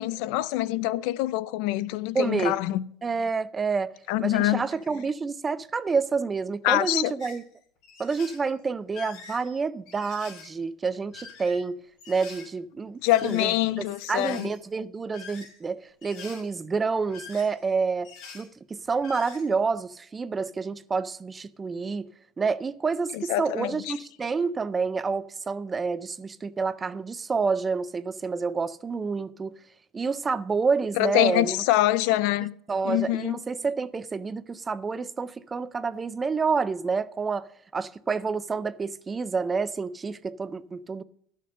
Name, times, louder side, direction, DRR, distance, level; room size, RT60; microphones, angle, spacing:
voice 1, 0.0-2.8 4.1-4.6 6.6-7.1 13.0-14.5 23.1-23.8 31.0-32.5 32.8-33.4, left 16 dB, 65° left, 0.5 m, -25 dB
voice 2, 2.1-2.6 3.0-3.9 4.2-7.4 8.0-11.8 12.1-22.1 22.4-29.5 29.9-31.6 32.7-41.0, right 4 dB, 15° right, 0.4 m, -28 dB
sound 1, 7.2-7.4 7.8-8.5 8.9-10.5 11.0-11.6 12.0-12.5 13.0-13.7 14.0-14.6 15.1-15.6 16.0-16.5 16.9-17.7 18.0-18.5 18.8-19.4, left 5 dB, 45° left, 4.2 m, -45 dB
13.0 x 6.6 x 6.5 m
cardioid pair, 170°, 0 cm